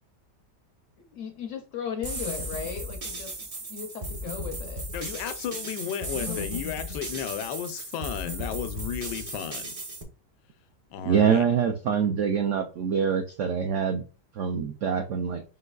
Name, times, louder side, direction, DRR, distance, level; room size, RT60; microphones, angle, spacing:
voice 1, 1.1-3.3 3.7-4.8 6.2-6.4, left 7 dB, 70° left, 0.7 m, -36 dB
sound 1, 2.0-10.0, equal, 40° right, 0.5 m, -36 dB
voice 2, 4.9-9.7 10.9-11.5, left 9 dB, 85° left, 1.2 m, -34 dB
voice 3, 11.0-14.0 14.3-15.4, right 7 dB, 80° right, 0.6 m, -25 dB
5.2 x 3.9 x 2.3 m
omnidirectional pair, 1.8 m